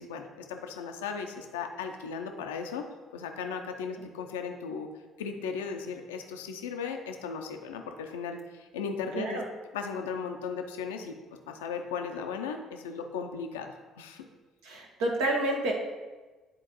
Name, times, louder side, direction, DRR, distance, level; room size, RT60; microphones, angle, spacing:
voice 1, 0.0-4.9 5.2-9.4 9.7-11.2 11.5-14.3, left 6 dB, 80° left, 5 dB, 0.5 m, -36 dB
voice 2, 14.6-15.7, right 1 dB, 75° right, 0 dB, 1.1 m, -29 dB
10.0 x 3.8 x 3.0 m, 1.3 s
hypercardioid pair, 55°, 0 cm